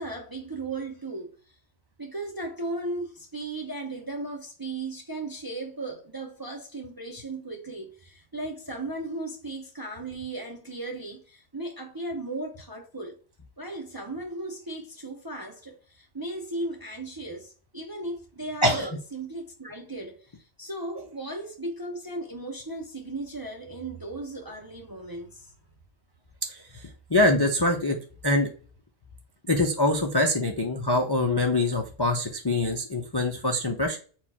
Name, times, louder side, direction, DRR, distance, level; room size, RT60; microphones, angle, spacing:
voice 1, 0.0-1.6 2.0-13.2 13.6-25.5, right 2 dB, 25° right, 0.5 m, -36 dB
voice 2, 26.5-28.0 28.2-28.5 29.5-34.0, left 2 dB, 35° left, 0.4 m, -24 dB
4.5 x 2.4 x 4.1 m
omnidirectional pair, 1.3 m